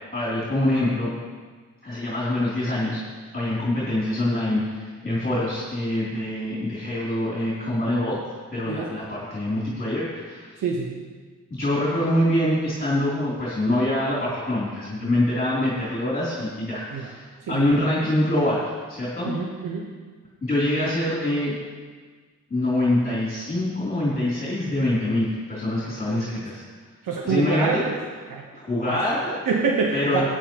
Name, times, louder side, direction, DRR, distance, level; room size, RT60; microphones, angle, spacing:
voice 1, 0.1-1.1 1.8-3.0 3.3-8.2 8.5-10.5 11.5-19.3 20.4-21.6 22.5-26.6 27.2-27.9 28.5-29.4 29.9-30.2, left 1 dB, 25° left, -8 dB, 3.2 m, -25 dB
voice 2, 10.6-11.0 16.9-17.1 17.5-17.8 19.2-19.9 26.1-26.3 27.0-27.9 28.3-28.4 28.8-29.0 29.5-30.2, right 5 dB, 90° right, -1 dB, 1.2 m, -26 dB
17.5 x 9.3 x 3.1 m, 1.5 s
wide cardioid pair, 120°, 32 cm